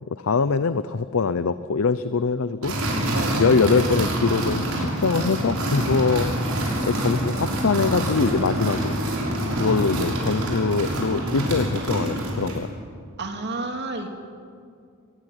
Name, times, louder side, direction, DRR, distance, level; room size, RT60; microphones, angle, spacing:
voice 1, 0.1-2.7 3.4-6.3 6.8-9.0 9.6-12.7, left 4 dB, 65° left, 13 dB, 0.6 m, -23 dB
sound 1, 2.6-12.7, right 1 dB, 70° right, 6.1 m, -26 dB
voice 2, 13.2-14.1, right 2 dB, 50° right, 4 dB, 2.6 m, -30 dB
21.5 x 20.0 x 9.7 m, 2.4 s
head